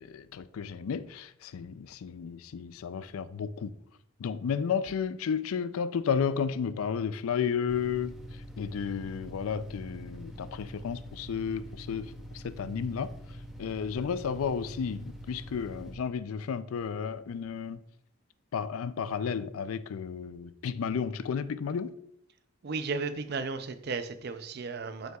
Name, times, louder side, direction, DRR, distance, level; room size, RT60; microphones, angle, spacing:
voice 1, 0.0-3.7 4.2-8.1 8.6-13.1 13.6-17.8 18.5-21.9, left 6 dB, 85° left, 0.4 m, -32 dB
Yanmar Engine Slow, 7.7-15.9, equal, ahead, 0.8 m, -45 dB
voice 2, 22.6-25.2, right 4 dB, 50° right, 0.5 m, -34 dB
7.6 x 5.6 x 2.3 m
head